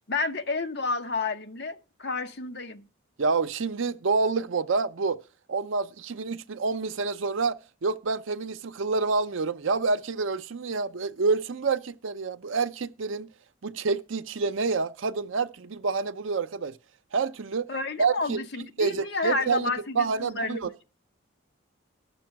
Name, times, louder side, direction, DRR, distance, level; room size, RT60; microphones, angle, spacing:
voice 1, 0.1-2.8 17.7-20.6, left 3 dB, 55° left, 0.9 m, -30 dB
voice 2, 3.2-5.2 5.5-13.3 13.6-16.8 17.1-17.7 18.0-18.4 18.8-20.7, right 4 dB, 75° right, 0.6 m, -28 dB
13.0 x 6.9 x 5.8 m
head